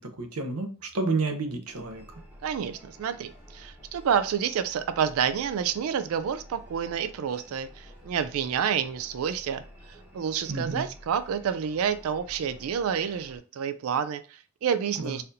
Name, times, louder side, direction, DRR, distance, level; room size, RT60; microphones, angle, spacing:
voice 1, 0.0-2.0 10.5-10.9 15.0-15.2, right 3 dB, 90° right, 6 dB, 0.7 m, -30 dB
sound 1, 1.7-13.4, equal, 5° right, 1.0 m, -50 dB
voice 2, 2.4-9.6 10.1-15.2, right 7 dB, 70° right, 10 dB, 0.3 m, -29 dB
4.1 x 2.6 x 2.6 m, 0.37 s
head